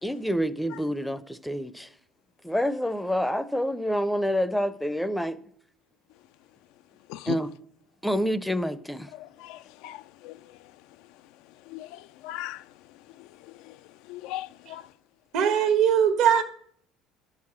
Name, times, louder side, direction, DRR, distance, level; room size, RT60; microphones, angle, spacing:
voice 1, 0.0-1.9 2.4-5.4 7.3-7.5 8.0-9.1, equal, 5° left, 0.5 m, -27 dB
voice 2, 9.1-10.8 11.5-14.9 16.3-16.4, left 14 dB, 75° left, 0.3 m, -40 dB
voice 3, 15.3-16.4, right 8 dB, 70° right, 1.3 m, -20 dB
11.0 x 4.8 x 7.2 m
supercardioid pair, 105°, 0 cm